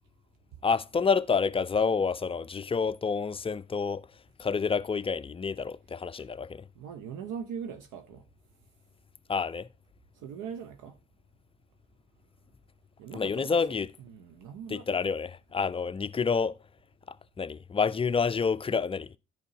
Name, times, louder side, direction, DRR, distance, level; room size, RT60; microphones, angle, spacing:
voice 1, 0.6-4.0 4.4-6.6 9.3-9.7 13.1-13.9 14.7-16.6 17.4-19.1, left 5 dB, 15° left, 0.4 m, -28 dB
voice 2, 6.8-8.2 10.2-10.9 13.0-13.8 14.1-14.9, right 7 dB, 65° right, 0.8 m, -40 dB
13.0 x 4.5 x 2.9 m
figure-of-eight pair, 40°, 34 cm